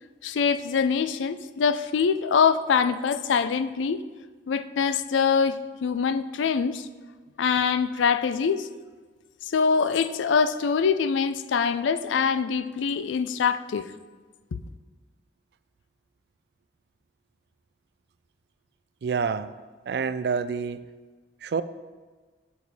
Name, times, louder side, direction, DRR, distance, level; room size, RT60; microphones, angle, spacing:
voice 1, 0.2-4.0 4.5-6.9 7.4-8.7 9.4-13.9, left 6 dB, 85° left, 0.4 m, -24 dB
voice 2, 19.0-19.5 19.9-20.8 21.4-21.6, right 5 dB, 60° right, 0.3 m, -27 dB
6.7 x 6.5 x 4.1 m
head